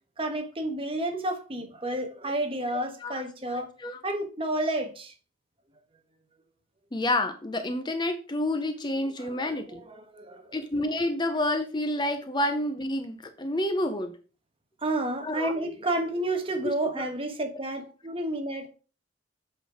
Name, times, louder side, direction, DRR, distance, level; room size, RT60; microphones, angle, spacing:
voice 1, 0.2-3.7 4.0-5.1 9.2-10.6 14.8-18.7, right 1 dB, 30° right, 1.2 m, -31 dB
voice 2, 3.5-4.0 6.9-9.8 10.5-14.1 15.2-15.5 16.6-17.0, left 1 dB, 25° left, 0.7 m, -29 dB
7.7 x 5.2 x 4.8 m
head